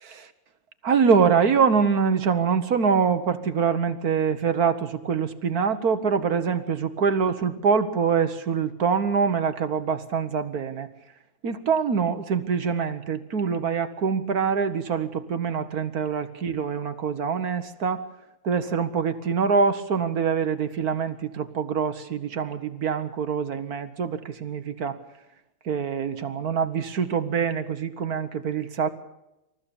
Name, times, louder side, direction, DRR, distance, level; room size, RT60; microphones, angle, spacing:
voice 1, 0.8-10.9 11.4-18.1 18.4-25.0 25.6-28.9, right 6 dB, 50° right, 10 dB, 1.4 m, -24 dB
27.0 x 14.5 x 7.1 m, 0.93 s
omnidirectional pair, 2.3 m